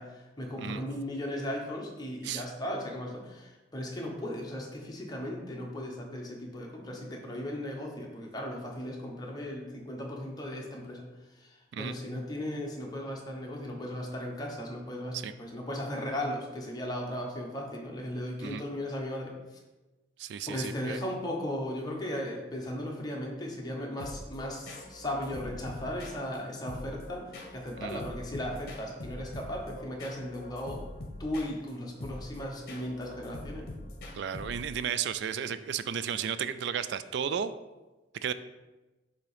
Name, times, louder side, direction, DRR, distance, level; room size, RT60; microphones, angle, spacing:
voice 1, 0.0-11.0 11.4-19.3 20.5-27.3 27.5-30.9 31.2-33.7, left 1 dB, 20° left, -1 dB, 0.9 m, -36 dB
voice 2, 20.2-21.0 27.8-28.0 34.1-37.5 38.2-38.3, right 8 dB, 60° right, 13 dB, 0.3 m, -33 dB
sound 1, 24.0-34.9, left 1 dB, 50° left, 0.9 m, -44 dB
6.8 x 2.9 x 4.9 m, 1.1 s
head